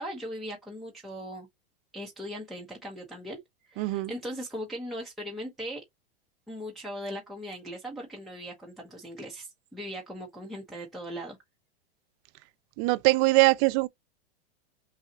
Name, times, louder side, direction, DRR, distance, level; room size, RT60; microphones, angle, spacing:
voice 1, 0.0-1.5 1.9-3.4 3.7-5.8 6.5-11.4, equal, ahead, 0.9 m, -39 dB
voice 2, 3.8-4.1 12.8-13.9, right 22 dB, 35° right, 0.4 m, -22 dB
5.6 x 2.4 x 2.7 m
hypercardioid pair, 135°, 33 cm